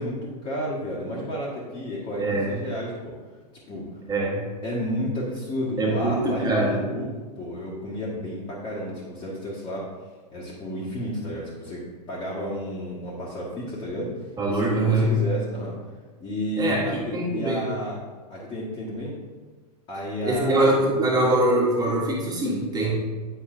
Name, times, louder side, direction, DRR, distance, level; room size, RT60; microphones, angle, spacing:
voice 1, 0.0-3.1 3.7-4.0 4.6-9.9 10.3-14.2 14.5-15.7 16.2-18.0 18.3-19.1 19.9-20.7 22.8-22.9, equal, 20° left, -8 dB, 1.3 m, -31 dB
voice 2, 4.1-4.4 5.8-6.8 14.4-15.1 16.6-17.7 20.2-22.9, right 2 dB, 20° right, -3 dB, 1.6 m, -23 dB
8.6 x 5.2 x 2.5 m, 1.4 s
figure-of-eight pair, 105°, 21 cm